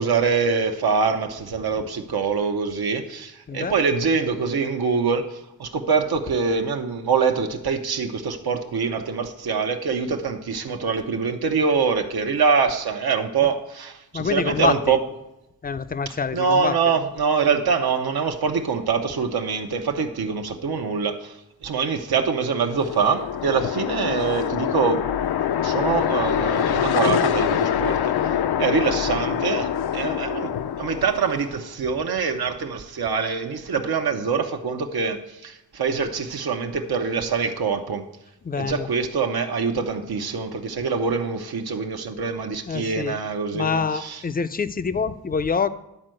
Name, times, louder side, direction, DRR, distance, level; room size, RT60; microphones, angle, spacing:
voice 1, 0.0-15.1 16.1-21.4 21.6-25.1 25.6-28.2 28.6-30.5 30.8-38.1 38.5-44.2, right 5 dB, 80° right, 5 dB, 0.9 m, -24 dB
voice 2, 3.5-3.8 14.1-15.0 15.6-16.9 38.4-38.9 42.7-43.2 43.5-45.7, left 5 dB, 25° left, 12 dB, 0.3 m, -26 dB
sound 1, 22.6-31.6, left 9 dB, 90° left, 0.5 m, -25 dB
11.0 x 4.5 x 7.6 m, 0.90 s
wide cardioid pair, 175°, 37 cm